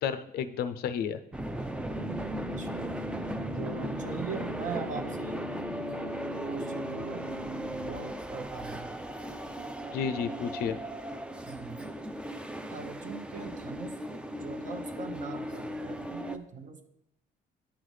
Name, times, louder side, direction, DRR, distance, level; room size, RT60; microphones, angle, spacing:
voice 1, 0.0-1.2 9.9-10.8, left 7 dB, 65° left, 11 dB, 0.5 m, -31 dB
sound 1, 1.3-16.4, right 1 dB, 5° right, 0.4 m, -37 dB
sound 2, 1.9-8.1, left 2 dB, 80° right, 0.9 m, -45 dB
voice 2, 2.6-2.9 3.5-5.4 6.5-7.3 7.8-8.9 11.5-11.8 12.7-13.9 14.3-16.9, right 5 dB, 50° right, 6 dB, 0.8 m, -41 dB
10.0 x 3.9 x 3.2 m, 0.83 s
cardioid pair, 110°, 17 cm